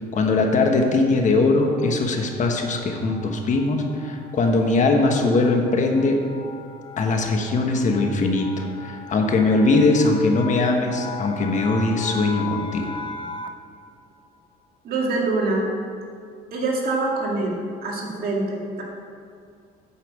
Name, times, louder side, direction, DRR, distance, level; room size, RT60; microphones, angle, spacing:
voice 1, 0.1-6.2 7.0-12.9, left 3 dB, 45° left, 3 dB, 1.3 m, -21 dB
sound 1, 1.6-13.7, left 4 dB, 30° left, 0.6 m, -39 dB
voice 2, 14.8-15.7 16.5-18.8, right 2 dB, 60° right, -2 dB, 2.3 m, -25 dB
8.4 x 5.8 x 7.4 m, 2.3 s
cardioid pair, 110°, 17 cm